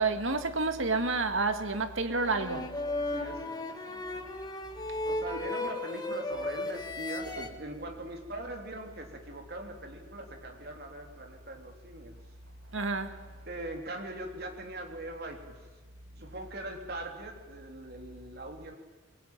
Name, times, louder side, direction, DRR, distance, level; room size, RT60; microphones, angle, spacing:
voice 1, 0.0-2.7 7.4-7.5 12.7-13.2, right 3 dB, 70° right, 2.0 m, -29 dB
sound 1, 2.2-7.5, left 2 dB, 20° left, 1.7 m, -35 dB
voice 2, 3.1-4.2 5.0-12.2 13.5-15.7 16.2-18.8, right 1 dB, 50° right, 3.7 m, -41 dB
23.0 x 21.5 x 9.2 m
head